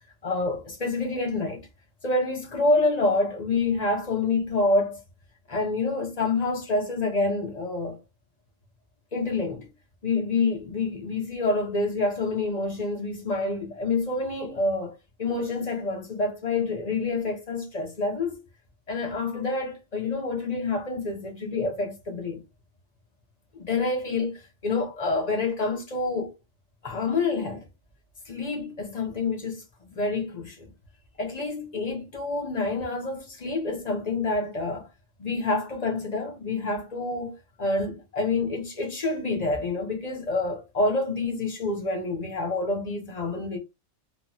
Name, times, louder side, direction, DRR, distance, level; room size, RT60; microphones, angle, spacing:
voice 1, 0.2-1.6 2.0-5.0 5.5-8.0 9.1-9.7 10.0-18.3 18.9-22.4 23.5-26.3 26.8-27.6 28.3-29.6 29.9-30.7 31.2-34.9 35.2-43.6, left 3 dB, 35° left, 0.8 m, -27 dB
3.0 x 2.8 x 2.3 m
omnidirectional pair, 1.4 m